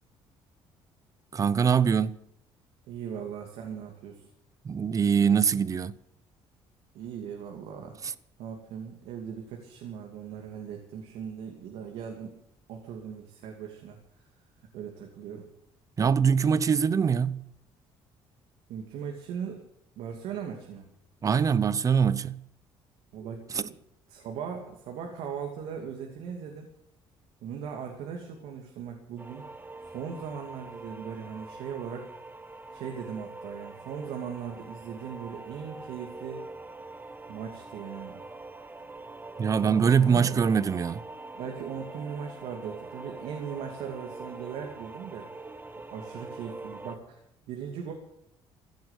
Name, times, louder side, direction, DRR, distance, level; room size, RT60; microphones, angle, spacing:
voice 1, 1.3-2.1 4.6-6.0 8.0-8.1 16.0-17.5 21.2-22.4 23.5-23.7 39.4-41.0, right 6 dB, 35° right, 0.8 m, -23 dB
voice 2, 2.9-4.3 6.9-8.0 8.4-12.3 12.7-14.0 14.7-15.5 18.7-19.7 20.0-20.8 23.1-23.7 24.1-26.7 27.4-29.5 29.8-32.1 32.7-36.4 37.3-38.2 39.4-40.4 41.3-45.3 45.9-47.2 47.5-47.9, right 7 dB, 85° right, 2.5 m, -39 dB
sound 1, 29.2-47.0, right 2 dB, 20° right, 1.2 m, -44 dB
15.5 x 10.5 x 8.3 m
cardioid pair, 115°, 10 cm